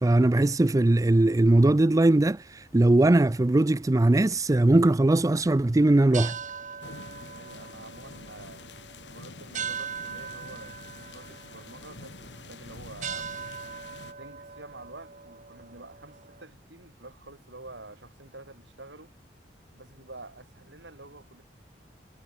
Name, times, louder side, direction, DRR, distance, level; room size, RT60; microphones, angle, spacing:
voice 1, 0.0-6.4, right 2 dB, 20° right, 0.4 m, -20 dB
sound 1, 6.0-16.4, right 7 dB, 45° right, 2.6 m, -41 dB
sound 2, 6.8-14.1, left 3 dB, 85° left, 2.7 m, -46 dB
voice 2, 7.1-8.7 9.1-13.3 14.2-19.1 19.7-21.4, right 2 dB, 85° right, 7.0 m, -48 dB
head